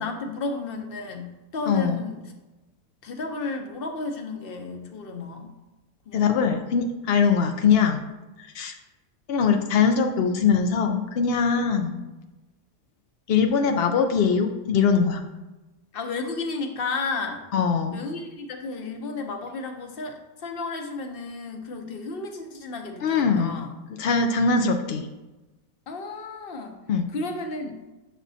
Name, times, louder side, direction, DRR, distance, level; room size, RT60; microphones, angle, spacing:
voice 1, 0.0-2.2 3.0-5.5 6.1-6.6 11.7-12.0 15.9-17.4 17.9-23.7 25.9-26.8 27.1-27.7, left 3 dB, 50° left, 4 dB, 0.8 m, -33 dB
voice 2, 1.7-2.0 6.1-8.0 8.4-8.8 9.3-12.0 13.3-15.2 17.5-18.0 23.0-23.7 24.0-25.1 26.9-27.1, left 6 dB, 80° left, 5 dB, 0.5 m, -22 dB
7.1 x 6.1 x 2.7 m, 1.1 s
omnidirectional pair, 1.6 m